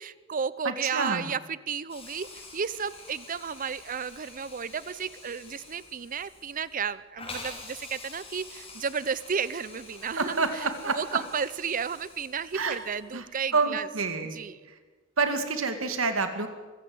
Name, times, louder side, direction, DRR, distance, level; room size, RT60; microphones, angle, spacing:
voice 1, 0.0-10.4 10.9-13.9 14.3-14.5, right 6 dB, 40° right, 18 dB, 0.6 m, -33 dB
voice 2, 0.6-1.3 10.2-11.0 12.5-12.8 13.1-13.3 13.5-14.4 14.7-14.8 15.2-16.5, right 4 dB, 85° right, 8 dB, 2.4 m, -28 dB
Hiss, 1.9-13.2, left 3 dB, 30° left, 5.3 m, -47 dB
23.5 x 15.5 x 7.8 m, 1.4 s
head